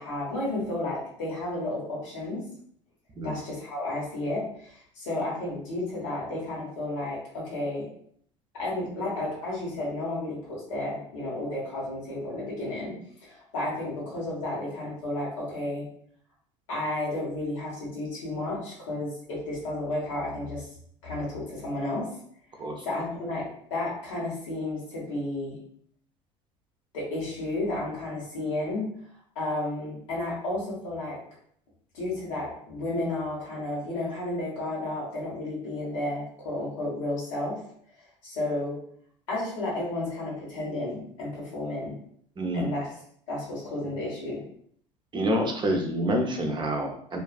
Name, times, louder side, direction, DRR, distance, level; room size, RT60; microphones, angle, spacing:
voice 1, 0.0-2.4 3.2-7.9 8.5-13.0 13.2-15.8 16.7-20.7 21.0-22.1 22.8-25.6 26.9-28.8 29.3-31.2 31.9-37.6 38.2-38.8 39.3-41.9 42.5-42.9 43.3-44.4, left 2 dB, 90° left, -5 dB, 1.1 m, -32 dB
voice 2, 42.4-42.7 45.1-47.2, equal, 30° right, 2 dB, 0.6 m, -27 dB
2.5 x 2.3 x 2.3 m, 0.64 s
hypercardioid pair, 75°, 16 cm